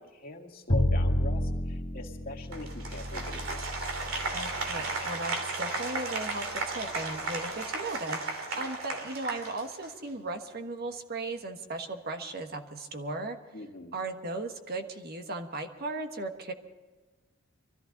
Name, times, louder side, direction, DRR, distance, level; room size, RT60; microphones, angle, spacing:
voice 1, 0.0-3.9 13.5-13.9, left 2 dB, 45° left, 1 dB, 2.2 m, -42 dB
Bowed string instrument, 0.7-6.8, left 1 dB, 30° left, 1.5 m, -32 dB
Applause, 2.5-10.1, right 3 dB, 85° right, 2.9 m, -35 dB
voice 2, 4.3-13.4 13.9-16.5, right 2 dB, 50° right, 5 dB, 1.3 m, -37 dB
23.5 x 14.0 x 4.0 m, 1.3 s
head